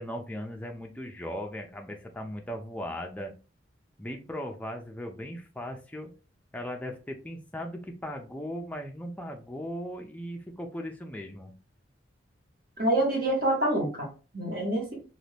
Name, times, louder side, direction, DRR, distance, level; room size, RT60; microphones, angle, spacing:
voice 1, 0.0-3.3 4.0-6.1 6.5-11.5, equal, 5° left, 2 dB, 0.4 m, -38 dB
voice 2, 12.8-15.0, right 1 dB, 50° right, -2 dB, 1.3 m, -27 dB
2.5 x 2.5 x 3.3 m, 0.34 s
head